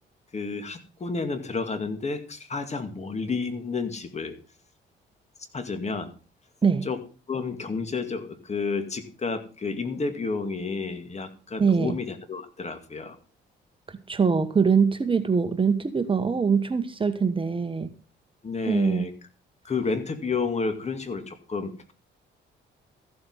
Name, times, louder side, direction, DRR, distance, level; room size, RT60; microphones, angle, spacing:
voice 1, 0.3-4.4 5.5-6.1 6.8-13.2 18.4-19.1 19.6-21.9, left 4 dB, 35° left, 8 dB, 2.3 m, -31 dB
voice 2, 11.6-12.0 13.9-17.9 18.7-19.0, right 5 dB, 25° right, 10 dB, 1.2 m, -23 dB
14.5 x 7.8 x 5.6 m, 0.36 s
cardioid pair, 90°, 20 cm